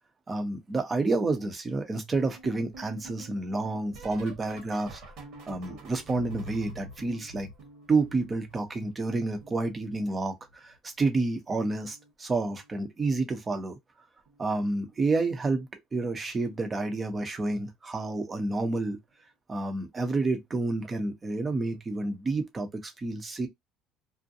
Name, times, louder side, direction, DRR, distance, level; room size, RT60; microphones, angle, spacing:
voice 1, 0.3-5.0 5.5-7.5 7.9-13.7 14.4-19.0 19.5-23.5, right 3 dB, 25° right, 0.8 m, -29 dB
sound 1, 2.1-8.9 9.2-10.8 11.8-12.1 12.4-12.7 14.3-14.5 14.9-15.1 16.7-16.8, right 1 dB, 65° right, 1.2 m, -47 dB
2.5 x 2.1 x 2.6 m
cardioid pair, 110°, 0 cm